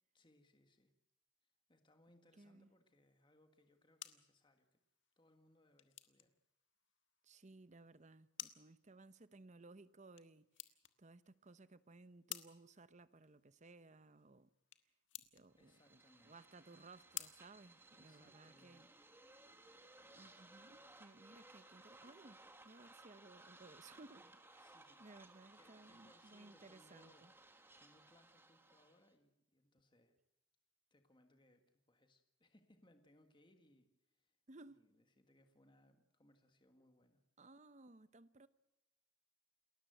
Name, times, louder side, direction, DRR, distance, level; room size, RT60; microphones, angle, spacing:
voice 1, 0.1-0.9 1.4-4.8 5.2-6.3 15.6-16.5 17.9-19.0 24.1-24.3 24.6-25.3 25.5-30.2 30.9-37.2, left 1 dB, 25° left, 1.6 m, -71 dB
voice 2, 2.4-2.7 7.2-10.5 11.0-14.5 15.3-18.9 20.2-24.2 25.0-27.3 34.5-34.9 37.4-38.5, right 2 dB, 40° right, 0.9 m, -60 dB
sound 1, 3.5-18.5, left 13 dB, 75° left, 1.4 m, -56 dB
sound 2, 15.6-29.1, right 2 dB, 10° right, 1.8 m, -62 dB
29.0 x 13.5 x 7.9 m
head